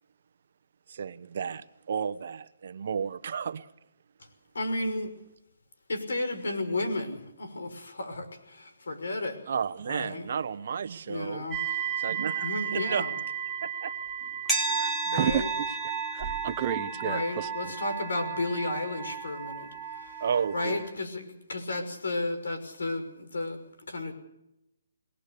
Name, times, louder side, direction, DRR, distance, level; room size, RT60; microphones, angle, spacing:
voice 1, 0.9-3.7 9.5-11.5 12.0-13.2 13.6-13.9 15.2-15.3 16.2-16.5 20.2-20.8, right 7 dB, 50° right, 1.0 m, -33 dB
voice 2, 4.5-5.1 5.9-9.4 9.9-10.3 11.1-11.6 12.4-13.1 15.0-15.5 17.0-20.2 20.5-24.1, left 2 dB, 90° left, 5.8 m, -33 dB
sound 1, 11.5-20.9, right 6 dB, 5° left, 2.5 m, -33 dB
voice 3, 14.8-16.2 16.6-17.7, right 9 dB, 25° right, 1.0 m, -32 dB
23.0 x 18.5 x 6.8 m
hypercardioid pair, 170°, 0 cm